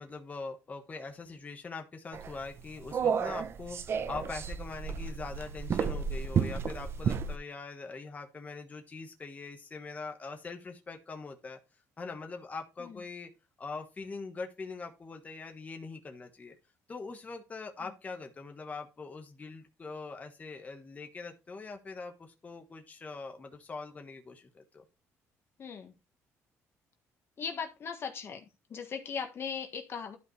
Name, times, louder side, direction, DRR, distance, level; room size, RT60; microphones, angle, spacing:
voice 1, 0.0-11.6 12.0-13.3 13.6-16.6 16.9-24.8, left 4 dB, 25° left, 1.4 m, -42 dB
sound 1, 2.1-7.4, right 6 dB, 45° right, 0.8 m, -32 dB
voice 2, 25.6-25.9 27.4-28.4 28.7-30.2, left 6 dB, 45° left, 1.5 m, -38 dB
12.0 x 5.2 x 3.3 m
cardioid pair, 110°, 6 cm